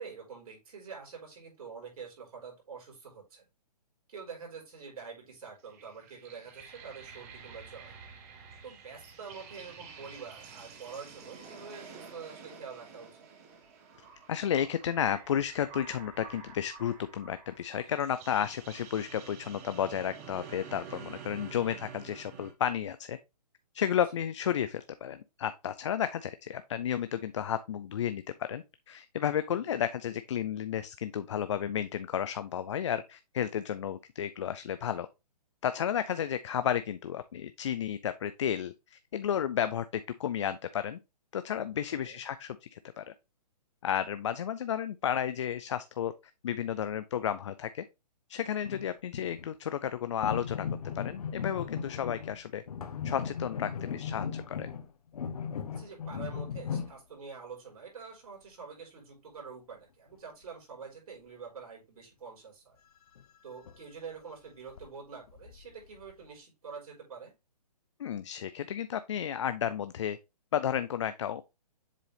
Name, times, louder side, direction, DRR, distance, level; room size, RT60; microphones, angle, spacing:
voice 1, 0.0-3.5 4.1-8.0 8.6-13.2 21.5-21.8 29.5-29.6 42.0-42.2 55.8-62.8 63.4-67.3, right 5 dB, 60° right, 4.3 m, -46 dB
sound 1, 5.6-22.5, right 6 dB, 25° right, 0.9 m, -49 dB
voice 2, 14.3-23.2 23.7-35.1 35.6-41.0 41.3-43.1 43.8-46.1 46.4-47.8 48.3-50.7 50.9-52.6 53.0-54.7 68.0-70.2 70.5-71.4, left 9 dB, 45° left, 0.4 m, -32 dB
sound 2, 48.6-49.5 50.2-52.4 52.7-57.0 63.2-63.3 63.6-63.8 64.1-64.2 64.7-64.9 65.3-66.2, left 7 dB, 65° left, 1.0 m, -37 dB
7.5 x 3.8 x 3.4 m
hypercardioid pair, 165°, 21 cm